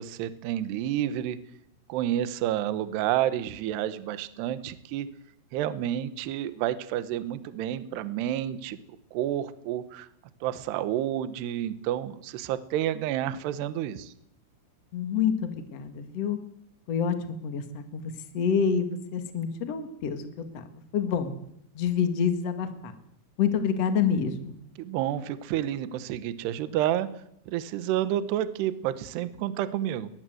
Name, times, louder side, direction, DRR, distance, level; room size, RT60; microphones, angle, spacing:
voice 1, 0.0-1.4 1.9-5.1 5.5-8.8 9.1-10.1 10.4-14.1 24.8-27.1 27.5-30.1, right 12 dB, 70° right, 13 dB, 2.7 m, -29 dB
voice 2, 14.9-16.4 16.9-17.2 17.4-21.3 21.7-22.9 23.4-24.6, left 7 dB, 70° left, 8 dB, 1.5 m, -27 dB
21.5 x 21.0 x 7.9 m, 0.75 s
omnidirectional pair, 6.0 m